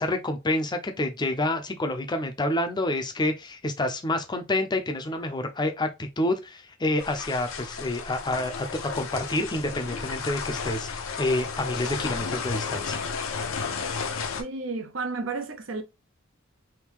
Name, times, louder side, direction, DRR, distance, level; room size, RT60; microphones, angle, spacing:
voice 1, 0.0-13.0, left 1 dB, 20° left, 0.5 m, -28 dB
sound 1, 7.0-14.4, left 5 dB, 75° left, 0.7 m, -33 dB
voice 2, 14.4-15.8, right 3 dB, 70° right, 0.7 m, -32 dB
3.5 x 2.7 x 3.0 m
head